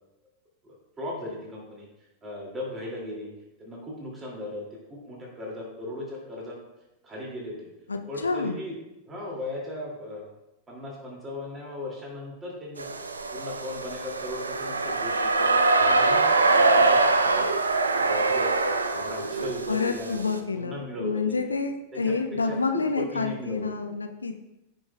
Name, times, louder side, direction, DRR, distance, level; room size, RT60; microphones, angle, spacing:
voice 1, 0.6-1.9 2.2-3.3 3.6-4.6 4.9-6.6 7.0-7.7 8.1-8.8 9.1-10.3 10.7-12.9 13.3-15.6 15.8-16.3 16.5-17.5 17.9-18.6 18.9-21.5 21.9-22.6 22.9-24.0, left 1 dB, 20° right, -3 dB, 2.5 m, -37 dB
voice 2, 7.9-8.6 19.7-24.3, left 4 dB, 75° left, 6 dB, 0.6 m, -28 dB
sound 1, 12.8-20.4, right 3 dB, 75° right, 0.5 m, -23 dB
14.5 x 5.5 x 2.3 m, 0.90 s
figure-of-eight pair, 90°, 0 cm